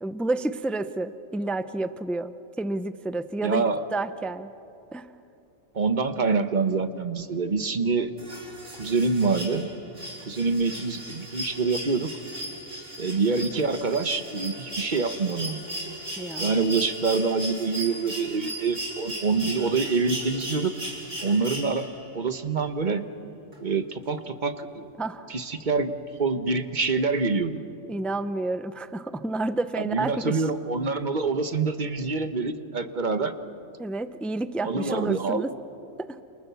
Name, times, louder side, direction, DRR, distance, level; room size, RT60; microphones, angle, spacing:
voice 1, 0.0-3.6 3.9-4.5 4.9-5.1 16.2-16.6 25.0-25.3 27.9-30.4 33.8-35.5 36.1-36.2, right 2 dB, ahead, 12 dB, 0.4 m, -30 dB
voice 2, 3.4-3.8 5.7-8.1 8.8-9.7 10.3-12.1 13.0-15.6 16.4-20.7 21.2-21.8 22.1-23.1 23.6-24.8 25.3-25.9 26.2-27.6 29.7-33.3 34.6-35.5, right 4 dB, 35° right, 9 dB, 1.2 m, -26 dB
sound 1, 8.2-22.1 23.5-23.6, right 1 dB, 65° right, 4.8 m, -37 dB
29.5 x 28.0 x 7.1 m, 2.8 s
omnidirectional pair, 1.4 m